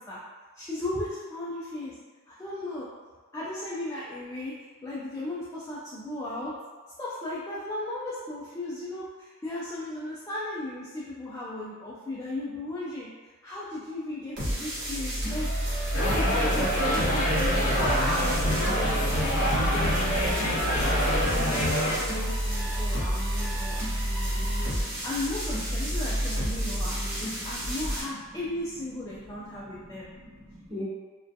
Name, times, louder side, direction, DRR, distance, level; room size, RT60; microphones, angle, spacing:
voice 1, 0.5-1.9 2.3-2.9 3.3-6.5 7.0-15.5 15.9-17.6 18.0-19.1 20.7-24.7 25.0-30.1, left 1 dB, 15° left, -8 dB, 0.3 m, -36 dB
sound 1, 14.4-28.0, equal, 55° right, 0.9 m, -29 dB
sound 2, 15.9-22.0, equal, 70° left, 0.6 m, -26 dB
voice 2, 24.3-25.1 26.6-27.8 28.1-28.2 29.5-30.8, left 1 dB, 35° right, -10 dB, 1.0 m, -45 dB
2.3 x 2.2 x 2.6 m, 1.4 s
head